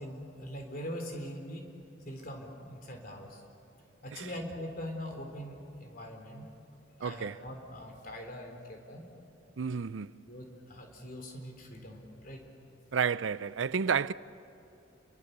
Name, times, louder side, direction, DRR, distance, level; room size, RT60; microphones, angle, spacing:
voice 1, 0.0-1.7 2.1-3.4 4.0-6.5 7.0-9.0 10.3-12.5, equal, 50° left, 4.0 m, -42 dB
voice 2, 7.0-7.4 9.6-10.2 12.9-14.1, right 6 dB, 80° right, 0.5 m, -31 dB
29.5 x 23.0 x 6.8 m
head